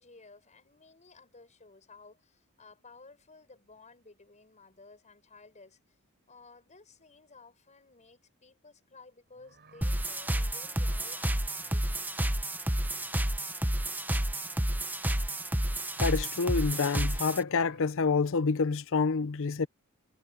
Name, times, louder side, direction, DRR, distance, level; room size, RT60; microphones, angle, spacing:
voice 1, 0.0-5.8 6.3-12.2, left 3 dB, 30° left, 6.0 m, -55 dB
sound 1, 9.3-10.0 11.3-11.8 12.6-13.2 14.2-14.8 15.5-15.6 15.9-16.5 17.3-17.9, right 3 dB, 50° right, 6.3 m, -61 dB
sound 2, 9.8-17.4, right 1 dB, 10° right, 0.8 m, -30 dB
voice 2, 16.0-19.7, left 4 dB, 60° left, 0.6 m, -28 dB
head